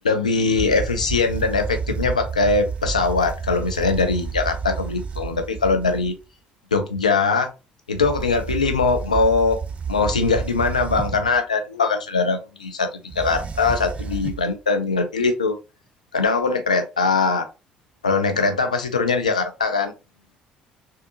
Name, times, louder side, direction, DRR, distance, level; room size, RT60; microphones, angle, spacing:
voice 1, 0.0-6.1 6.7-7.5 7.9-9.6 9.9-15.6 16.1-17.4 18.0-19.9, left 4 dB, 85° left, 6 dB, 0.4 m, -21 dB
sound 1, 0.6-6.2 7.9-11.4 13.1-14.5, right 6 dB, 35° right, 0.5 m, -31 dB
3.5 x 2.5 x 2.8 m, 0.28 s
figure-of-eight pair, 50°, 4 cm